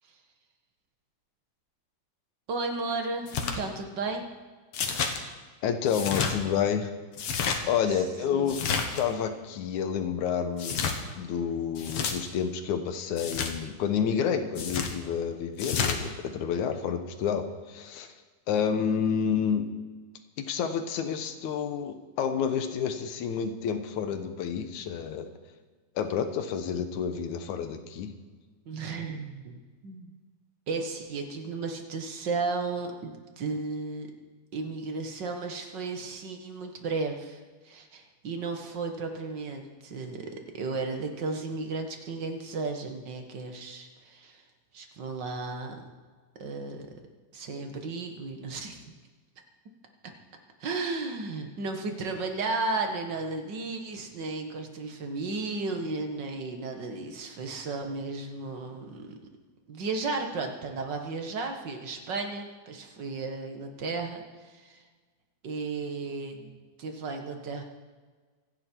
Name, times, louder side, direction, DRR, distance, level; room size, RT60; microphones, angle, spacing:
voice 1, 2.5-4.3 7.9-8.0 8.3-8.5 28.7-30.1 30.7-34.1 34.5-37.4 37.6-40.3 40.5-44.4 44.7-45.8 46.4-47.0 47.3-48.9 50.0-50.1 50.6-59.1 59.7-64.8 65.4-67.6, right 3 dB, 45° right, 4 dB, 1.7 m, -34 dB
sound 1, 3.3-3.6 4.7-5.2 5.9-6.3 7.1-7.6 8.5-9.0 10.6-11.0 11.8-12.1 13.2-13.5 14.6-14.9 15.6-16.0, left 6 dB, 55° left, 1.9 m, -29 dB
voice 2, 5.6-6.9 7.7-8.7 9.0-10.8 11.2-18.1 18.5-19.7 20.4-25.3 26.0-28.1, left 7 dB, 70° left, 8 dB, 2.5 m, -29 dB
25.5 x 10.5 x 4.6 m, 1.4 s
omnidirectional pair, 3.7 m